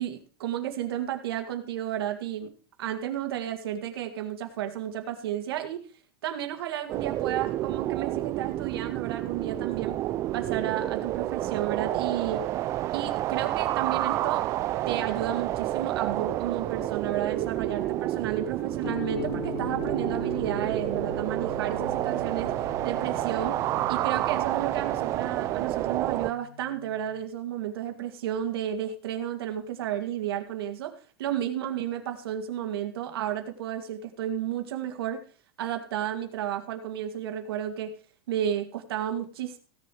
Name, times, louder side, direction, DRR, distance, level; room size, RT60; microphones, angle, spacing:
voice 1, 0.0-2.5 2.8-5.9 6.2-10.0 10.3-12.5 12.9-14.5 14.9-22.5 22.8-23.6 23.9-30.9 31.2-35.2 35.6-37.9 38.3-39.6, right 10 dB, 80° right, 5 dB, 2.2 m, -32 dB
sound 1, 6.9-26.3, right 14 dB, 25° right, 0.5 m, -29 dB
sound 2, 18.8-27.2, left 8 dB, 75° left, 1.2 m, -41 dB
16.0 x 7.7 x 4.8 m, 0.38 s
supercardioid pair, 175°, 13 cm